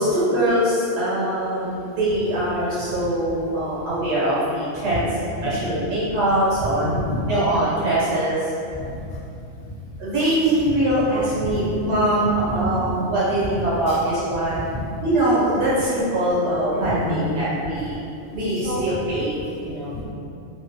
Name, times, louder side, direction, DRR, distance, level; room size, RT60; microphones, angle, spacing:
voice 1, 0.0-5.1 5.4-6.9 7.3-8.5 10.0-14.6 15.0-18.0 18.3-19.9, right 1 dB, 80° right, -10 dB, 1.2 m, -22 dB
voice 2, 6.6-7.3 8.7-8.9 9.6-9.7 10.4-10.7 11.0-11.1 11.4-11.7 12.5-12.7 13.9-14.0 14.5-14.8 16.7-17.3 17.7-17.8 18.6-19.0 19.9-20.0, left 1 dB, 55° left, -10 dB, 0.6 m, -29 dB
2.6 x 2.2 x 2.5 m, 2.7 s
omnidirectional pair, 1.2 m